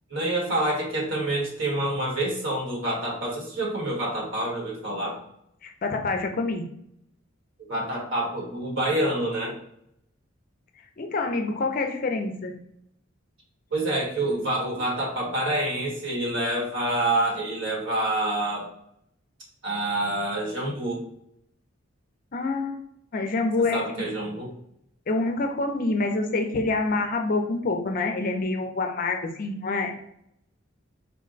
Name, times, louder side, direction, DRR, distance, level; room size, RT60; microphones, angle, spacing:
voice 1, 0.1-5.2 7.7-9.6 13.7-18.7 19.6-21.0 23.6-24.5, right 1 dB, 65° right, -2 dB, 1.4 m, -27 dB
voice 2, 5.6-6.6 11.0-12.5 22.3-22.8 23.1-23.8 25.1-29.9, left 3 dB, 45° left, 5 dB, 0.5 m, -26 dB
4.4 x 2.1 x 3.9 m, 0.75 s
head